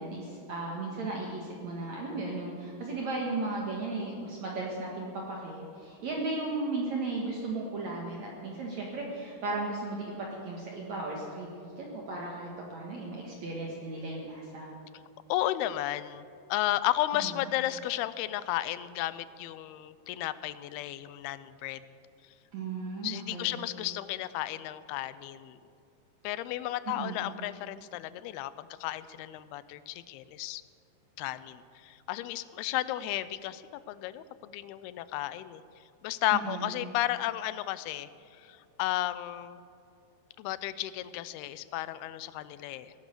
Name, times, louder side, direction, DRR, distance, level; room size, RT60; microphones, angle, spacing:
voice 1, 0.0-14.7 17.1-17.3 22.5-23.6 26.9-27.2 36.3-36.7, right 2 dB, 55° right, -2 dB, 2.5 m, -36 dB
voice 2, 15.3-21.8 23.0-25.6 26.2-30.6 31.2-35.6 36.0-39.6 40.4-42.9, left 14 dB, 90° left, 15 dB, 2.6 m, -33 dB
17.5 x 11.5 x 6.8 m, 2.7 s
omnidirectional pair, 4.4 m